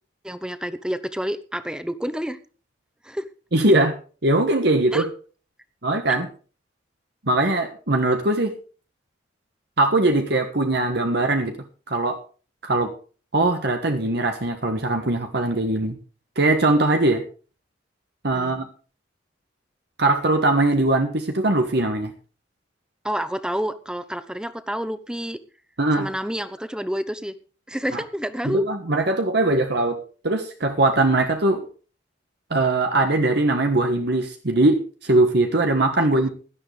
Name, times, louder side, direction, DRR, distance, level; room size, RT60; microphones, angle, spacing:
voice 1, 0.2-2.4 3.0-3.3 4.9-5.1 6.1-6.2 18.3-18.5 23.0-25.4 25.9-27.3 27.7-28.6 36.0-36.3, equal, 5° right, 13 dB, 0.9 m, -29 dB
voice 2, 3.5-3.9 4.2-5.1 5.8-6.3 7.2-8.5 9.8-11.6 11.9-12.2 12.6-12.9 13.3-16.0 16.4-17.2 18.2-18.6 20.0-22.1 25.8-26.1 27.9-28.0 28.4-30.0 30.2-31.6 32.5-36.3, right 2 dB, 60° right, 5 dB, 1.4 m, -21 dB
17.0 x 12.0 x 3.4 m, 0.37 s
head